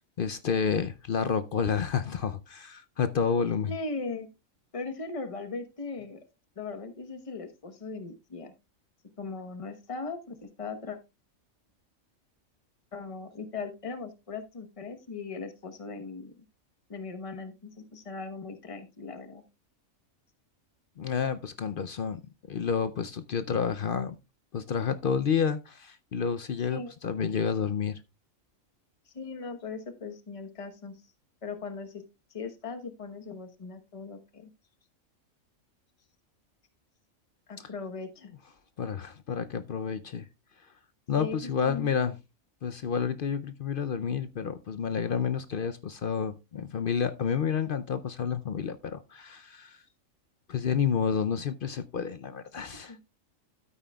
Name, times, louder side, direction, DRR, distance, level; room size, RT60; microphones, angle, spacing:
voice 1, 0.2-3.7 21.0-22.2 22.5-24.2 24.5-28.0 37.6-37.7 38.8-40.3 41.1-42.2 42.6-49.8 50.5-53.0, left 7 dB, 60° left, 0.6 m, -30 dB
voice 2, 3.6-4.3 4.7-6.2 6.6-8.5 9.2-11.0 12.9-16.4 16.9-19.4 26.6-26.9 29.1-31.0 31.4-32.0 32.3-34.5 37.5-38.3 41.1-41.9 52.9-53.0, left 4 dB, 25° left, 1.0 m, -39 dB
12.5 x 8.8 x 2.3 m
omnidirectional pair, 1.4 m